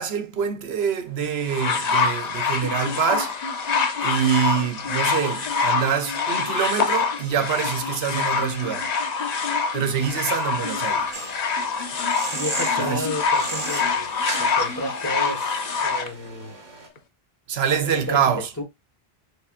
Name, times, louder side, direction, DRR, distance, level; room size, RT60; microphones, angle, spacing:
voice 1, 0.0-3.4 4.0-8.9 9.7-11.1 12.8-13.1 17.5-18.5, right 8 dB, 90° right, 1.0 m, -25 dB
sound 1, 1.5-16.1 17.0-17.1, left 5 dB, 45° left, 0.7 m, -25 dB
sound 2, 11.1-16.9, right 3 dB, 50° right, 1.0 m, -35 dB
voice 2, 12.3-14.1 14.4-16.6 17.7-18.2 18.6-18.7, equal, 15° left, 1.3 m, -32 dB
6.5 x 2.7 x 2.5 m
omnidirectional pair, 1.0 m